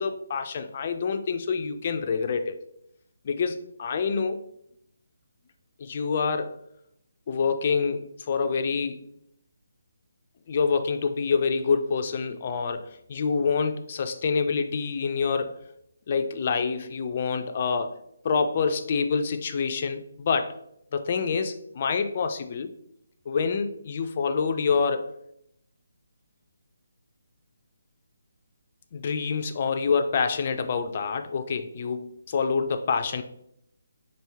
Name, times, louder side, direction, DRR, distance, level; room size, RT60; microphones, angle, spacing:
voice 1, 0.0-2.6 3.2-4.4 5.8-6.5 7.3-9.0 10.5-15.5 16.1-17.9 18.2-20.5 20.9-22.7 23.3-25.1 28.9-33.2, left 5 dB, 40° left, 7 dB, 0.4 m, -26 dB
4.4 x 2.6 x 3.4 m, 0.75 s
figure-of-eight pair, 150°, 0 cm